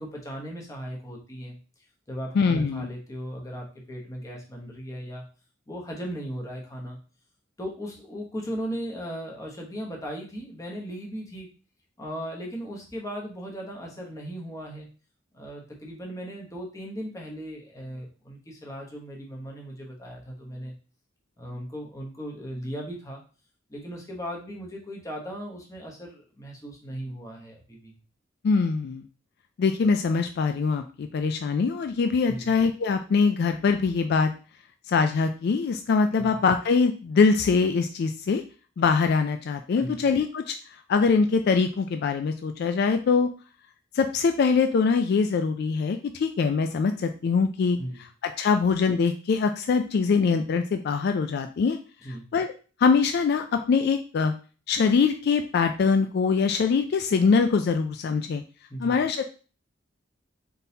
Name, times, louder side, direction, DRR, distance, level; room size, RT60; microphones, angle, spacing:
voice 1, 0.0-1.6 2.1-5.2 5.7-7.0 7.6-11.5 12.0-14.9 15.3-20.7 21.4-23.2 23.7-27.9 32.3-32.5 36.2-36.4 39.8-40.0 47.8-48.0 52.0-52.2 58.7-59.0, equal, 15° left, -1 dB, 0.9 m, -37 dB
voice 2, 2.3-2.9 28.4-29.0 29.6-34.3 34.9-38.4 38.8-40.6 40.9-43.3 43.9-51.8 52.3-52.5 52.8-54.3 54.7-58.4 58.8-59.2, left 5 dB, 55° left, 7 dB, 0.3 m, -23 dB
4.0 x 3.8 x 2.7 m, 0.36 s
head